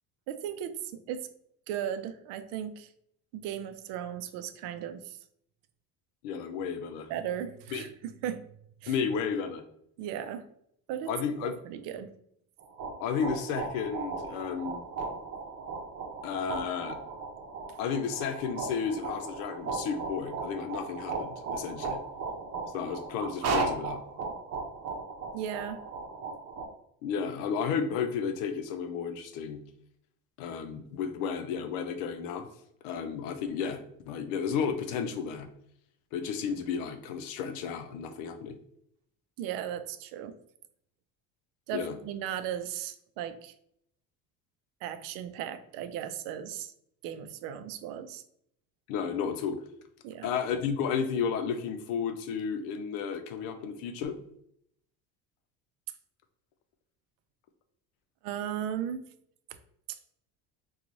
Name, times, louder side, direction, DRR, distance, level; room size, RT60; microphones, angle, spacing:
voice 1, 0.3-1.3 1.7-2.9 3.3-5.2 7.1-8.4 8.8-8.9 10.0-10.5 10.9-11.1 11.4-12.1 25.3-25.8 39.4-40.4 41.7-43.5 44.8-46.7 47.0-48.2 50.0-50.3 58.2-59.0 59.9-60.0, right 9 dB, 75° right, 10 dB, 0.5 m, -36 dB
voice 2, 6.2-7.1 7.7-7.8 8.9-9.6 11.1-11.5 13.0-14.8 16.2-17.0 17.8-22.0 22.7-24.0 27.0-29.6 30.4-32.5 32.8-33.8 34.1-35.5 36.1-38.6 41.7-42.0 48.9-49.6 50.2-54.2, left 6 dB, 80° left, 8 dB, 0.6 m, -32 dB
sound 1, 12.6-26.7, right 4 dB, 45° right, 0.8 m, -36 dB
3.0 x 2.3 x 3.8 m, 0.71 s
cardioid pair, 115°, 34 cm